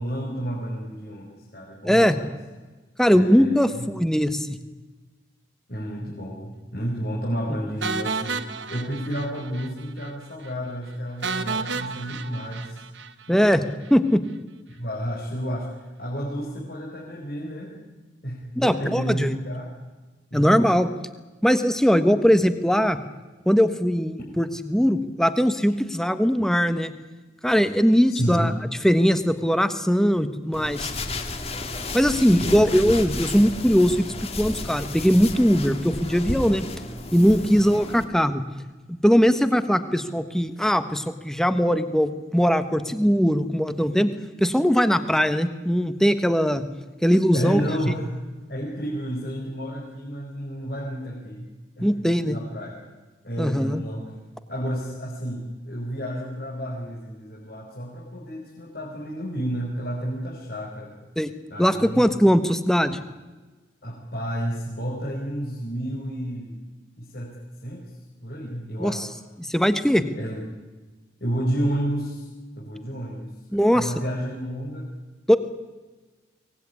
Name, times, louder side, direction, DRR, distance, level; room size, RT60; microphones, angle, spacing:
voice 1, 0.0-2.3 3.1-3.9 5.7-8.4 8.7-12.8 14.7-15.7 16.0-17.7 18.2-19.7 20.3-20.6 28.1-28.5 32.4-32.7 47.3-48.1 48.5-51.5 51.8-51.9 52.3-52.7 53.2-54.1 54.5-60.9 61.5-62.1 63.8-66.6 67.0-67.3 67.6-67.8 68.2-69.0 70.2-70.5 71.2-72.3 72.6-73.3 73.7-74.9, equal, 55° left, -3 dB, 5.0 m, -31 dB
voice 2, 1.8-2.2 3.0-4.6 13.3-13.6 13.9-14.2 18.5-19.3 20.3-20.9 21.4-23.0 23.4-26.9 27.4-28.5 28.8-30.9 31.9-34.0 34.4-36.7 37.1-38.4 39.0-44.1 44.4-46.6 47.0-47.6 51.8-52.4 53.4-53.8 61.2-61.3 61.6-63.0 68.8-69.1 69.4-70.1 73.5-73.9 75.3-75.4, equal, 5° left, 10 dB, 1.3 m, -20 dB
sound 1, 7.8-9.7 10.0-10.1 10.4-10.5 11.2-13.5, right 4 dB, 80° right, 1.4 m, -31 dB
sound 2, 30.5-38.0, left 2 dB, 35° left, 2.2 m, -33 dB
24.0 x 19.0 x 9.8 m, 1.2 s
head